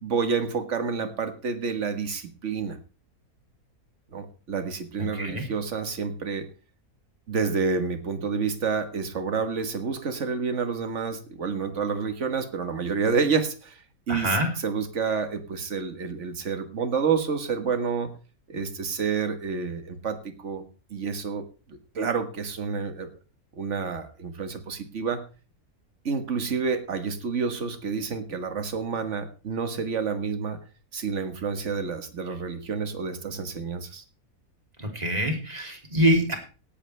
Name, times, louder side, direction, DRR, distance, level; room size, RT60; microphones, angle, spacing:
voice 1, 0.0-2.8 4.1-6.5 7.3-18.1 18.5-20.6 20.9-23.1 23.5-25.2 26.0-30.6 30.9-34.0, right 5 dB, 50° right, 9 dB, 1.7 m, -29 dB
voice 2, 5.0-5.5 14.1-14.5 34.8-36.3, equal, 25° right, 2 dB, 3.2 m, -25 dB
17.5 x 11.0 x 3.3 m, 0.35 s
omnidirectional pair, 1.7 m